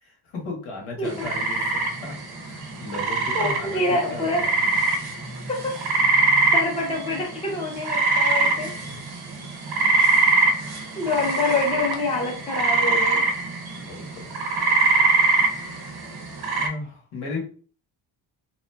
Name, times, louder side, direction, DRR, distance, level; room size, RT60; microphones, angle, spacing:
voice 1, 0.0-4.8 8.7-9.1 10.6-10.7 11.0-11.3 13.7-14.3 15.4-16.0 16.5-17.4, left 2 dB, 85° left, -2 dB, 1.3 m, -36 dB
sound 1, 1.1-16.7, right 3 dB, 50° right, 0.6 m, -23 dB
voice 2, 3.3-4.4 5.5-6.0 6.5-8.7 11.0-13.3, left 2 dB, 15° left, 0 dB, 0.6 m, -26 dB
2.9 x 2.5 x 2.2 m, 0.40 s
cardioid pair, 120°, 48 cm